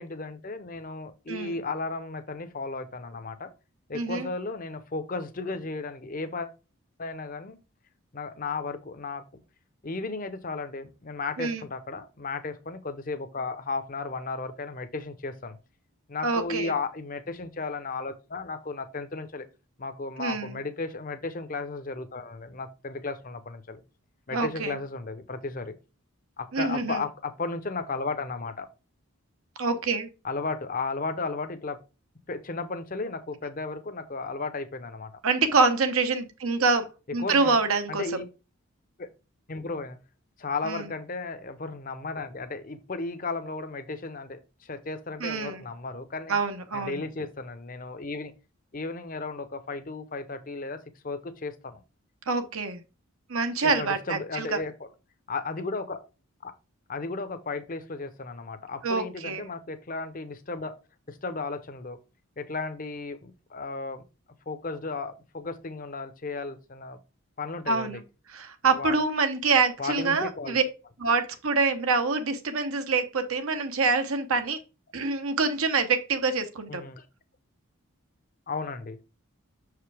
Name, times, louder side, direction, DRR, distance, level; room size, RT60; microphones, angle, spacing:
voice 1, 0.0-3.5 3.9-6.5 7.0-7.6 8.1-9.4 9.8-15.6 16.1-19.5 19.8-23.8 24.3-25.7 26.4-28.7 30.2-31.8 32.3-35.1 37.2-38.2 39.5-40.0 40.4-46.4 46.7-48.3 48.7-51.8 53.6-54.9 55.3-56.1 56.4-56.5 56.9-60.8 61.1-62.0 62.4-64.0 64.5-67.0 67.4-68.0 68.6-69.0 69.8-70.6 70.8-70.9 76.7-77.0 78.5-79.0, left 3 dB, 40° left, 10 dB, 0.7 m, -34 dB
voice 2, 1.3-1.6 3.9-4.3 11.4-11.6 16.2-16.7 20.2-20.6 24.3-24.8 26.5-27.0 29.6-30.1 35.2-38.2 40.6-40.9 45.2-45.6 46.3-47.0 52.3-52.8 53.3-54.6 58.8-59.5 67.7-68.0 68.3-70.6 71.0-74.6 74.9-76.8, right 4 dB, 75° right, 7 dB, 1.0 m, -26 dB
6.4 x 4.9 x 3.3 m, 0.30 s
head